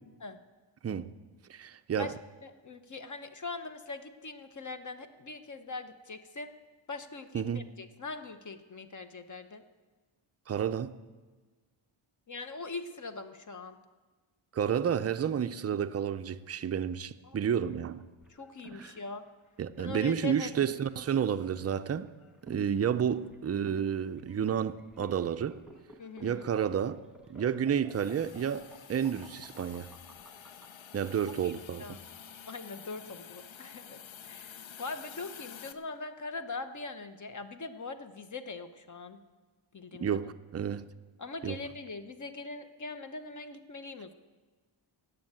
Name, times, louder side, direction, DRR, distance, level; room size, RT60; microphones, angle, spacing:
voice 1, 1.5-2.1 7.3-7.6 10.5-10.9 14.5-18.0 18.8-18.9 19.6-22.1 22.5-25.6 26.2-27.0 27.3-29.9 30.9-31.8 40.0-40.8 41.4-41.6, right 8 dB, 30° right, 0.4 m, -31 dB
voice 2, 2.4-6.5 6.9-9.6 12.3-13.8 17.2-17.4 18.3-19.2 19.8-20.5 26.0-26.5 31.4-31.5 31.8-32.0 32.5-39.2 39.7-40.2 41.2-44.1, left 3 dB, 35° left, 0.8 m, -42 dB
sound 1, 18.2-30.7, right 2 dB, ahead, 1.3 m, -53 dB
Hiss, 27.9-35.7, left 8 dB, 65° left, 0.9 m, -49 dB
14.5 x 8.9 x 9.0 m
wide cardioid pair, 160°, 50 cm